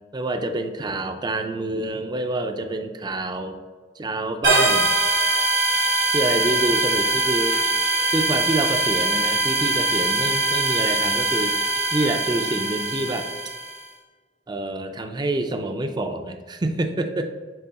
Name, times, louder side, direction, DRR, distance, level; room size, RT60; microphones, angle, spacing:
voice 1, 0.1-3.6 4.0-4.9 6.1-7.6 8.1-11.6 11.9-13.3 14.5-17.4, right 2 dB, 25° right, 7 dB, 0.4 m, -27 dB
sound 1, 4.4-13.8, right 2 dB, 75° right, 1.8 m, -22 dB
6.7 x 3.4 x 4.1 m, 1.4 s
head